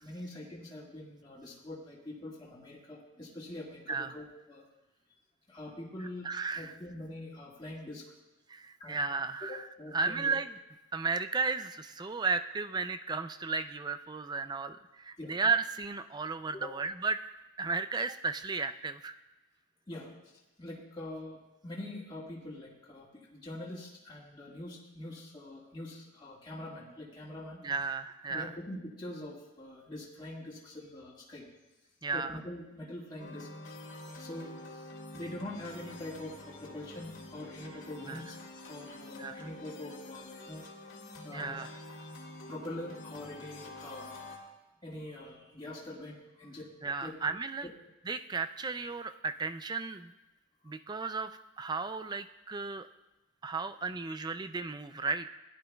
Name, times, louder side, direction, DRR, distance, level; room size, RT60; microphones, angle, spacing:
voice 1, 0.0-4.6 5.5-6.3 6.5-8.0 8.8-9.1 9.4-10.4 15.2-15.3 16.5-16.7 19.9-20.1 20.6-27.6 28.3-31.5 32.1-33.5 34.2-38.3 38.7-40.6 41.2-41.6 42.5-44.1 44.8-46.7 47.0-47.2 47.6-47.7, left 1 dB, 20° left, -6 dB, 1.7 m, -44 dB
voice 2, 6.2-6.7 8.5-9.6 9.9-10.5 10.9-17.2 17.6-19.1 27.6-28.5 32.0-32.4 38.1-38.2 39.2-39.5 41.3-41.7 46.8-47.7 48.1-50.1 50.6-51.3 51.6-52.9 53.4-55.3, right 4 dB, 20° right, 10 dB, 0.3 m, -34 dB
sound 1, 33.2-44.4, left 2 dB, 65° left, 2.0 m, -47 dB
16.5 x 11.0 x 2.3 m, 1.1 s
head